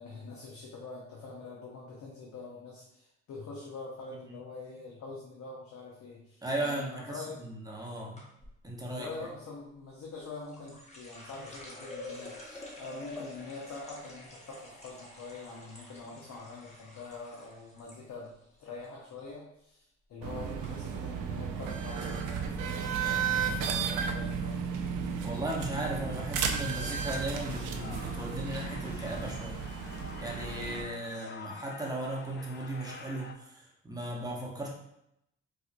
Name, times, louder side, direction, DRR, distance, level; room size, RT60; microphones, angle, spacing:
voice 1, 0.0-7.4 9.0-18.3 18.6-24.6, left 3 dB, 65° left, -3 dB, 0.8 m, -44 dB
voice 2, 6.4-8.2 8.6-9.1 25.2-29.6 30.2-34.7, right 1 dB, 10° right, -2 dB, 0.8 m, -36 dB
sound 1, 8.2-8.6 10.0-18.0 18.3-18.9 19.2-19.5 20.2-20.3 20.6-20.7, left 1 dB, 20° left, 1.0 m, -48 dB
sound 2, 20.2-30.8, right 6 dB, 85° right, 0.5 m, -34 dB
sound 3, 27.3-33.3, left 4 dB, 40° left, 0.4 m, -48 dB
4.4 x 2.2 x 2.5 m, 0.79 s
cardioid pair, 90°, 30 cm